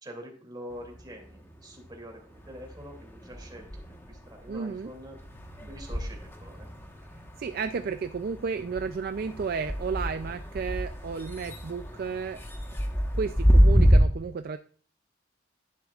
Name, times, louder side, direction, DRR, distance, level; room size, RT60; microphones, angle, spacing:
voice 1, 0.0-5.2 5.6-6.7, equal, 25° right, 3 dB, 2.6 m, -45 dB
sound 1, 0.7-2.0 2.3-14.0, equal, 15° left, 1.2 m, -28 dB
voice 2, 4.5-4.9 7.4-12.4 13.1-14.6, right 5 dB, 55° right, 9 dB, 0.4 m, -32 dB
10.5 x 10.5 x 2.4 m, 0.43 s
head